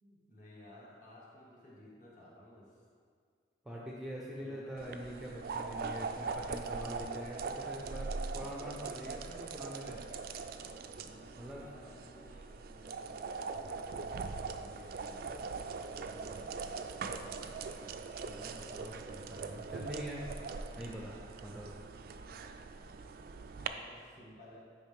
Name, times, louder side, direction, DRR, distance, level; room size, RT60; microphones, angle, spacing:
voice 1, 0.0-2.8 4.4-5.0 5.9-6.7 10.9-15.5 15.8-17.9 23.2-24.6, left 1 dB, 40° left, -6 dB, 1.8 m, -57 dB
voice 2, 3.6-10.0 11.4-11.6 18.3-20.2 20.8-21.2 21.4-21.8, equal, 5° right, -4 dB, 0.6 m, -44 dB
sound 1, 4.8-23.7, right 4 dB, 50° right, 0.3 m, -41 dB
9.2 x 5.1 x 3.5 m, 2.1 s
head